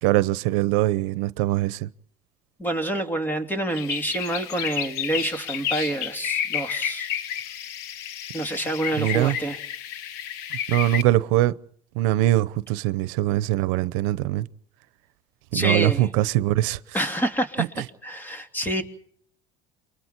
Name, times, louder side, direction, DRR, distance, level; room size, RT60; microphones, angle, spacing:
voice 1, 0.0-1.9 9.0-9.4 10.7-11.6 11.9-14.5 15.5-16.8 17.6-17.8, right 15 dB, 90° right, 0.8 m, -22 dB
voice 2, 2.6-7.1 8.3-9.6 15.5-16.1 16.9-17.6 18.0-18.8, right 1 dB, 10° left, 3.1 m, -27 dB
sound 1, 3.7-11.0, left 9 dB, 75° left, 1.1 m, -31 dB
29.0 x 24.0 x 4.5 m
cardioid pair, 120°, 16 cm